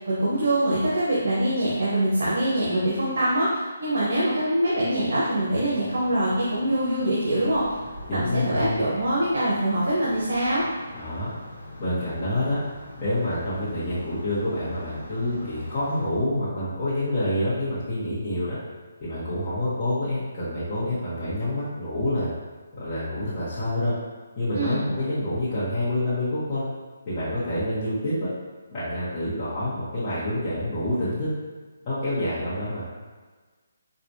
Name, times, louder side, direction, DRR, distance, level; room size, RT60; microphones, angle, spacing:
voice 1, 0.0-7.7 8.1-10.6 24.5-24.8, right 1 dB, 70° right, -7 dB, 1.0 m, -24 dB
sound 1, 5.9-16.1, left 1 dB, 75° left, 1.0 m, -43 dB
voice 2, 8.1-8.8 10.9-11.3 11.8-12.6 13.0-18.6 19.0-22.3 22.8-23.9 24.4-26.6 27.1-28.3 28.7-31.3 31.8-32.8, left 1 dB, 25° left, -13 dB, 1.1 m, -27 dB
4.6 x 2.4 x 2.7 m, 1.4 s
hypercardioid pair, 160°, 0 cm